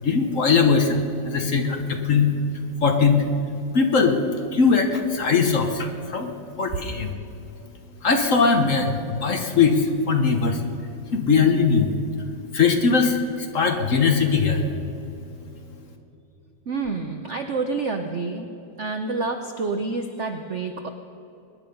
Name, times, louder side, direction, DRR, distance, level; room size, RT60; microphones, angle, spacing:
voice 1, 0.0-2.3 2.8-3.2 3.7-4.2 4.5-6.3 6.6-7.1 8.0-10.6 11.1-12.0 12.5-14.6, left 5 dB, 45° left, 4 dB, 1.2 m, -20 dB
voice 2, 16.7-18.5 18.8-20.9, right 3 dB, 85° right, 6 dB, 0.6 m, -28 dB
22.0 x 10.5 x 5.4 m, 3.0 s
omnidirectional pair, 2.3 m